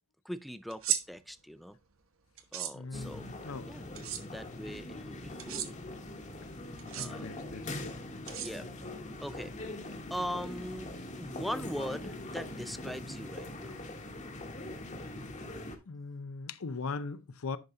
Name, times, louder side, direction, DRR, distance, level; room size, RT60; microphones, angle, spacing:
voice 1, 0.2-1.8 2.5-3.3 3.6-5.8 7.0-7.3 8.4-8.7 9.2-9.6 10.1-10.9 11.2-13.7, equal, ahead, 0.4 m, -40 dB
sound 1, 0.7-1.0 2.4-2.7 4.0-4.2 5.4-5.7 6.8-7.1 8.3-8.9, right 10 dB, 75° right, 1.0 m, -34 dB
voice 2, 2.7-3.6 7.0-8.0 15.9-17.6, left 4 dB, 90° left, 0.7 m, -40 dB
sound 2, 2.9-15.8, left 1 dB, 35° left, 1.2 m, -42 dB
10.5 x 4.3 x 3.7 m
head